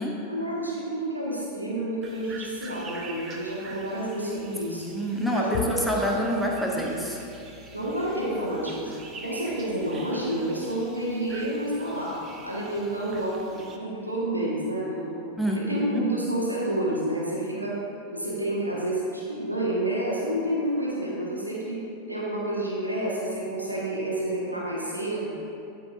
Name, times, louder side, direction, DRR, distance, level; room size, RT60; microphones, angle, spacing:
voice 1, 0.3-4.8 5.3-5.9 7.7-12.1 12.4-15.3 15.7-17.8 18.1-21.8 22.1-25.3, right 1 dB, 85° right, -6 dB, 1.4 m, -29 dB
sound 1, 2.0-13.8, right 3 dB, 25° right, 0.7 m, -45 dB
voice 2, 4.7-7.2 15.4-16.1, equal, ahead, -2 dB, 0.9 m, -27 dB
Bowed string instrument, 5.5-12.0, left 6 dB, 40° left, 0.4 m, -43 dB
11.5 x 4.7 x 2.5 m, 2.6 s
figure-of-eight pair, 90°, 0 cm